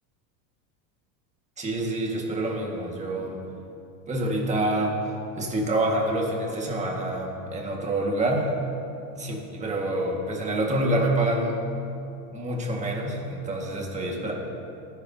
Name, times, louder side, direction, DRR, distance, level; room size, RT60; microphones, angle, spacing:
voice 1, 1.6-3.4 4.1-5.0 5.4-8.6 9.1-11.6 12.3-14.3, right 1 dB, 15° right, -1 dB, 1.7 m, -27 dB
19.5 x 10.5 x 2.8 m, 2.7 s
supercardioid pair, 145°, 46 cm